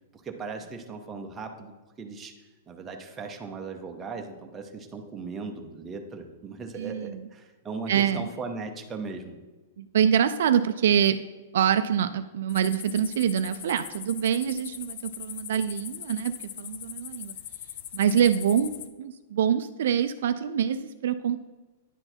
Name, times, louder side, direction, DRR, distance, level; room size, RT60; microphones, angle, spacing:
voice 1, 0.2-2.3 2.7-9.4, right 4 dB, 10° right, 3 dB, 0.6 m, -38 dB
voice 2, 6.8-7.2 7.9-8.3 9.8-11.2 11.5-16.3 16.6-17.3 17.9-21.4, right 8 dB, 60° right, 11 dB, 0.3 m, -25 dB
sound 1, 12.5-18.9, left 11 dB, 40° left, 0.4 m, -41 dB
9.7 x 4.5 x 4.3 m, 1.2 s
supercardioid pair, 175°, 0 cm